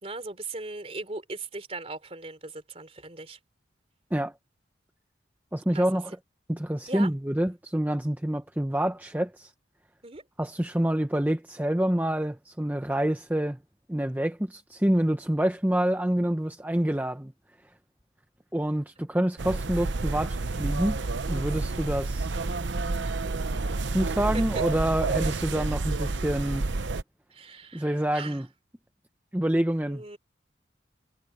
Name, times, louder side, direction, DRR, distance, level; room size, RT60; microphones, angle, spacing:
voice 1, 0.0-3.4 5.7-6.0 6.9-7.1 10.0-10.2 24.3-24.6 27.3-28.4 29.8-30.2, right 3 dB, 35° right, 3.2 m, -39 dB
voice 2, 5.5-6.1 6.5-9.5 10.4-13.6 13.9-17.3 18.5-21.0 21.3-22.3 23.8-26.7 27.7-28.5 29.3-30.0, right 1 dB, 10° right, 0.7 m, -27 dB
sound 1, 19.4-27.0, right 3 dB, 80° right, 0.8 m, -29 dB
head